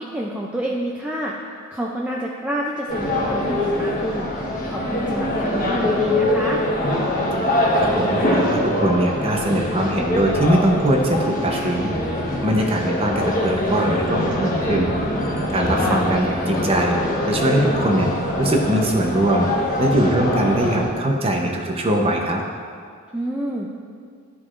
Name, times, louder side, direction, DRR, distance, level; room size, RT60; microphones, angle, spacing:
voice 1, 0.0-1.4 1.7-4.3 4.7-6.6 15.8-16.0 23.1-23.7, right 1 dB, 5° right, -3 dB, 0.3 m, -28 dB
sound 1, 2.9-20.9, left 1 dB, 40° left, 1.1 m, -23 dB
voice 2, 7.8-11.9 12.4-14.9 15.5-17.0 17.3-18.1 18.4-19.5 19.8-22.4, right 1 dB, 25° right, 1 dB, 0.7 m, -21 dB
13.0 x 4.7 x 2.5 m, 2.1 s
head